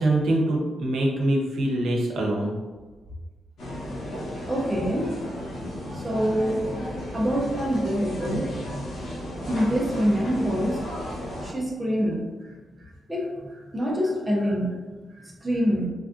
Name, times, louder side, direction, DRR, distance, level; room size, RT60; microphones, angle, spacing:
voice 1, 0.0-2.5 12.8-12.9, right 1 dB, 70° right, -2 dB, 0.7 m, -24 dB
sound 1, 3.6-11.5, left 1 dB, 75° left, 0.8 m, -34 dB
voice 2, 4.5-5.2 5.9-8.9 9.5-11.0 11.4-12.3 13.1-13.4 13.7-14.8 15.4-15.9, equal, 10° right, -3 dB, 0.4 m, -25 dB
3.3 x 2.5 x 2.3 m, 1.3 s
wide cardioid pair, 180°, 0 cm